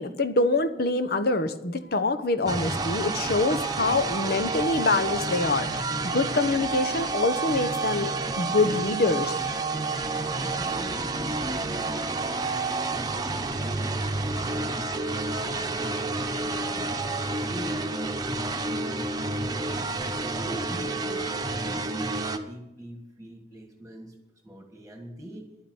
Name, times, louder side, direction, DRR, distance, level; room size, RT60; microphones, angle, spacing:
voice 1, 0.0-9.3, left 3 dB, 60° left, 10 dB, 1.0 m, -25 dB
sound 1, 2.5-22.4, right 3 dB, 25° right, 1.0 m, -29 dB
voice 2, 10.4-15.1 15.4-16.9 17.4-20.1 20.3-22.1 22.4-24.2 24.4-25.5, right 1 dB, 5° right, 3 dB, 1.7 m, -43 dB
11.5 x 9.7 x 7.9 m, 0.88 s
head